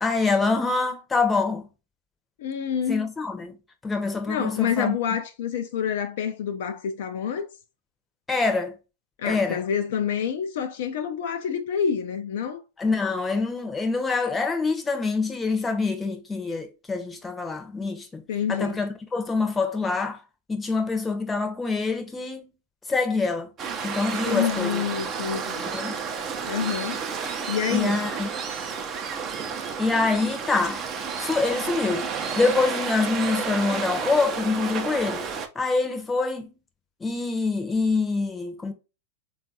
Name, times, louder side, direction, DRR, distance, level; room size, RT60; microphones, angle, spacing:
voice 1, 0.0-1.7 2.9-5.0 8.3-8.8 9.2-9.6 12.8-18.2 18.5-20.2 20.5-22.5 22.9-23.5 23.8-24.8 25.7-26.0 27.7-28.3 29.8-30.8 31.2-32.1 32.4-35.3 35.5-36.5 37.0-38.7, left 3 dB, 15° left, 0.7 m, -25 dB
voice 2, 2.4-3.1 4.3-7.5 9.2-12.6 18.3-18.8 24.2-25.6 26.5-27.0 27.5-28.0, left 8 dB, 65° left, 0.4 m, -27 dB
Waves surf, 23.6-35.5, right 6 dB, 35° right, 0.5 m, -31 dB
3.7 x 2.3 x 2.7 m
hypercardioid pair, 100°, 0 cm